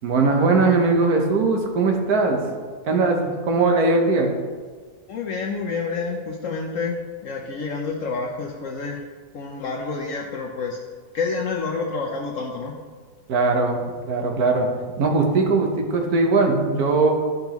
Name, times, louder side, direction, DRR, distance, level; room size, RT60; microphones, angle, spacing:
voice 1, 0.0-2.4 2.8-4.3 13.3-13.8 14.1-14.7 15.0-17.1, right 3 dB, 75° right, 2 dB, 1.6 m, -20 dB
voice 2, 5.1-9.0 9.3-10.8 11.1-12.7, left 4 dB, 65° left, 1 dB, 1.0 m, -28 dB
12.0 x 5.3 x 3.0 m, 1.5 s
omnidirectional pair, 1.6 m